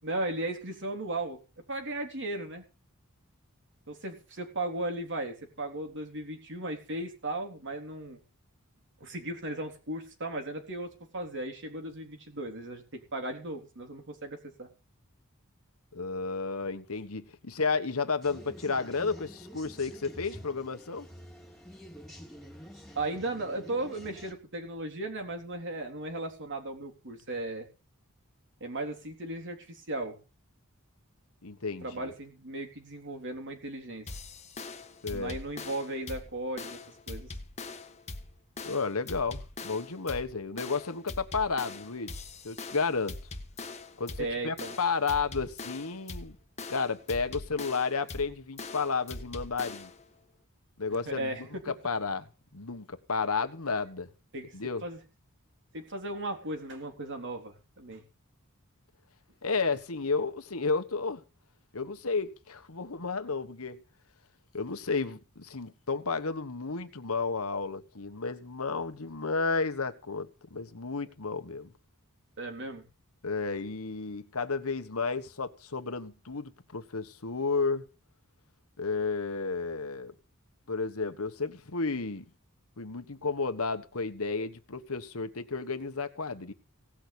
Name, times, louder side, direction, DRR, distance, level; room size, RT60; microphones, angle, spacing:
voice 1, 0.0-1.4 1.7-2.6 3.9-8.2 9.0-14.7 23.0-27.7 28.6-30.2 31.8-34.1 35.1-36.8 37.1-37.3 44.2-44.8 50.9-51.6 54.3-54.5 54.8-55.0 55.7-58.0 72.4-72.9, right 2 dB, 55° right, 3.7 m, -36 dB
voice 2, 15.9-21.1 31.4-31.9 35.0-35.4 38.6-43.1 44.0-46.3 46.7-49.9 50.8-51.3 51.7-52.3 52.5-54.1 54.5-54.8 59.4-61.2 61.7-63.8 64.5-71.7 73.2-77.8 78.8-80.1 80.7-82.2 82.8-86.5, left 4 dB, 70° left, 1.4 m, -32 dB
sound 1, 18.2-24.3, equal, ahead, 2.8 m, -48 dB
sound 2, 34.1-50.0, left 3 dB, 30° left, 1.5 m, -42 dB
18.0 x 6.3 x 8.5 m
head